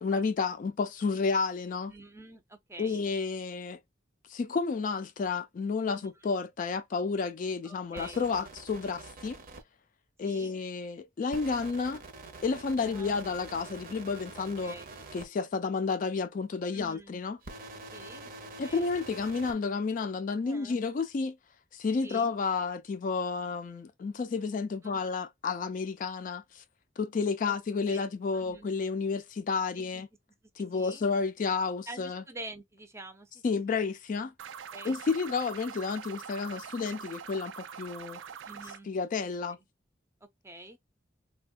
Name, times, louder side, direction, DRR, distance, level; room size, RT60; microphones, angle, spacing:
voice 1, 0.0-1.9 2.8-3.8 4.3-9.4 10.2-12.0 12.4-14.8 15.1-17.4 18.6-21.4 21.7-26.6 27.0-30.1 30.6-32.2 33.4-34.3 34.8-38.2 38.9-39.6, left 4 dB, 45° left, 0.3 m, -31 dB
voice 2, 1.9-3.0 5.9-6.1 7.6-8.2 10.2-10.5 12.8-13.2 14.6-14.9 16.7-17.2 17.9-18.3 18.6-18.9 20.4-20.8 22.0-22.3 24.8-25.1 27.5-27.6 27.9-28.0 28.3-28.7 30.7-31.0 31.9-33.8 34.7-35.0 38.5-38.9 40.4-40.8, right 1 dB, 15° right, 0.5 m, -47 dB
sound 1, 8.0-9.6 11.3-15.3 17.4-19.5, right 3 dB, 50° right, 0.7 m, -46 dB
sound 2, 34.4-38.8, right 7 dB, 75° right, 0.3 m, -44 dB
3.3 x 2.2 x 2.4 m
head